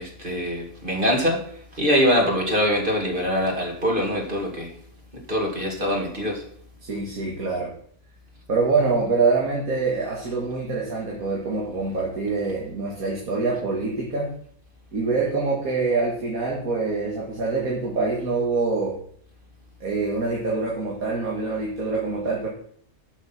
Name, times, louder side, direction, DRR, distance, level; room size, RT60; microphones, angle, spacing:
voice 1, 0.0-1.4 1.7-4.7 5.1-6.4, equal, 35° right, -1 dB, 2.5 m, -23 dB
voice 2, 6.8-7.7 8.5-14.3 14.9-19.0 19.8-22.5, right 4 dB, 85° right, -3 dB, 2.4 m, -25 dB
11.5 x 6.6 x 6.0 m, 0.62 s
omnidirectional pair, 1.5 m